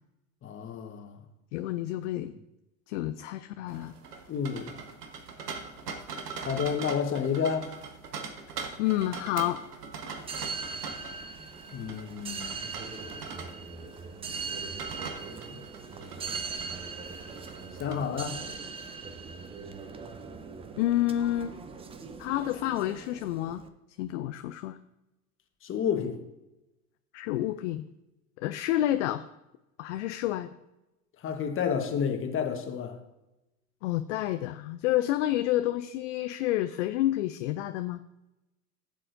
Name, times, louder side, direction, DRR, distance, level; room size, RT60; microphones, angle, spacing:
voice 1, 0.4-1.2 4.3-4.7 6.4-7.7 11.7-12.6 15.5-15.6 17.8-18.4 25.6-26.2 31.2-33.0, left 7 dB, 25° left, 5 dB, 1.3 m, -30 dB
voice 2, 1.5-2.3 2.9-3.9 8.8-9.6 20.8-21.6 22.2-23.6 24.0-24.8 27.1-27.8 28.4-29.2 29.8-30.5 33.8-38.0, left 14 dB, 50° left, 10 dB, 0.5 m, -29 dB
sound 1, 3.7-17.9, right 5 dB, 75° right, 1.3 m, -42 dB
sound 2, 10.2-23.7, right 4 dB, 10° right, 0.5 m, -40 dB
15.0 x 7.6 x 2.6 m, 0.95 s
figure-of-eight pair, 85°, 47 cm